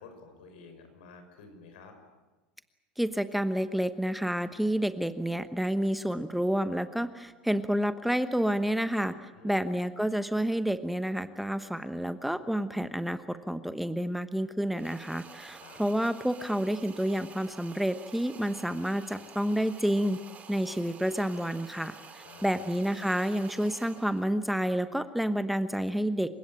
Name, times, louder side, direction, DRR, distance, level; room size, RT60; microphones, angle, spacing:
voice 1, 0.0-2.0 9.3-9.7 15.6-15.9 22.2-22.8, left 4 dB, 75° left, 6 dB, 5.9 m, -51 dB
voice 2, 3.0-9.1 9.4-20.2 20.5-26.3, equal, ahead, 11 dB, 1.1 m, -29 dB
sound 1, 14.7-24.3, right 6 dB, 30° right, 3.5 m, -50 dB
28.5 x 16.5 x 9.1 m, 1.2 s
hypercardioid pair, 90°, 5 cm